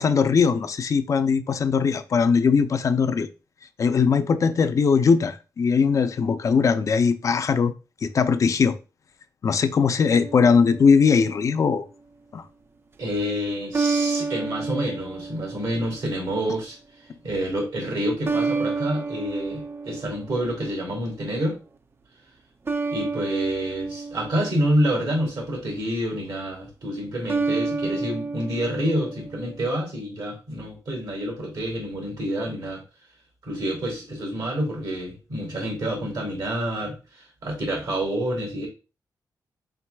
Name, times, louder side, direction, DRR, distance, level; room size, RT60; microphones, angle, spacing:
voice 1, 0.0-3.3 3.8-7.7 8.0-8.8 9.4-11.8 12.3-12.4, left 5 dB, 50° left, 0.4 m, -20 dB
sound 1, 10.1-11.4 13.7-16.2 18.2-20.8 22.7-25.2 27.3-29.6, right 4 dB, 35° right, 0.4 m, -30 dB
voice 2, 13.0-16.8 17.2-21.6 22.9-32.8 33.4-38.7, equal, 75° right, 2.2 m, -28 dB
4.5 x 4.0 x 2.2 m
wide cardioid pair, 105°, 7 cm